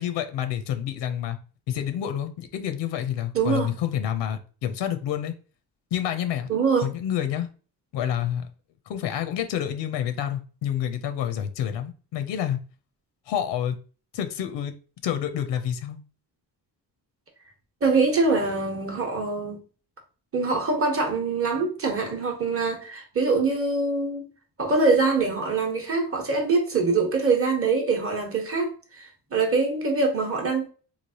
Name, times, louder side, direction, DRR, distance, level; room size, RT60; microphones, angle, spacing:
voice 1, 0.0-1.4 1.7-5.3 5.9-6.5 6.8-7.5 7.9-8.5 8.9-12.6 13.3-13.8 14.1-14.7 15.0-16.0, left 10 dB, 90° left, 0.6 m, -28 dB
voice 2, 3.3-3.7 6.5-6.9 17.8-19.6 20.3-24.3 24.6-30.7, right 4 dB, 30° right, 0.9 m, -24 dB
3.2 x 2.4 x 2.8 m
cardioid pair, 110°, 42 cm